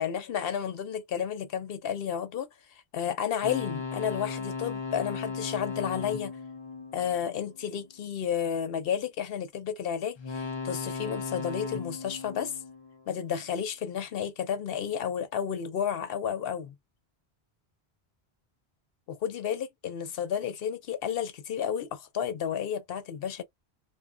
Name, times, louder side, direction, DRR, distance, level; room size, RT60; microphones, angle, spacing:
voice 1, 0.0-2.5 2.9-6.4 6.9-12.6 13.1-16.7 19.1-23.4, left 8 dB, 65° left, 0.7 m, -32 dB
sound 1, 3.4-7.8 10.2-13.5, left 4 dB, 50° left, 0.3 m, -37 dB
2.1 x 2.1 x 3.6 m
omnidirectional pair, 1.1 m